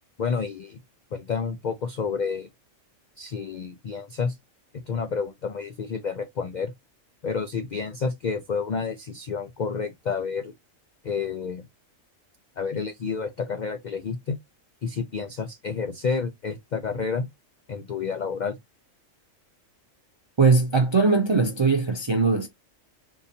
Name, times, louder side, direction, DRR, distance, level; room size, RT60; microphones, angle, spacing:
voice 1, 0.2-0.8 1.1-2.5 3.2-4.4 4.9-6.7 7.2-10.5 11.0-11.7 12.6-14.4 14.8-17.3 17.7-18.6, left 5 dB, 85° left, 0.4 m, -29 dB
voice 2, 20.4-22.5, right 4 dB, 40° right, 0.4 m, -20 dB
3.8 x 2.6 x 2.6 m
omnidirectional pair, 1.4 m